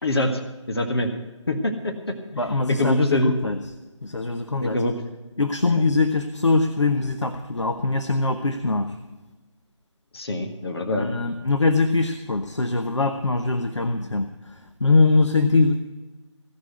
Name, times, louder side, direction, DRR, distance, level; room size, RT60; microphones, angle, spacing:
voice 1, 0.0-0.4 0.7-1.1 1.5-2.2 2.7-3.4 4.6-4.9 5.6-5.7 10.1-11.1, left 1 dB, 55° left, 4 dB, 1.6 m, -24 dB
voice 2, 2.3-3.6 4.0-4.8 5.4-9.0 11.0-15.8, left 3 dB, 70° left, 7 dB, 1.0 m, -22 dB
16.0 x 6.4 x 9.3 m, 1.2 s
figure-of-eight pair, 155°, 16 cm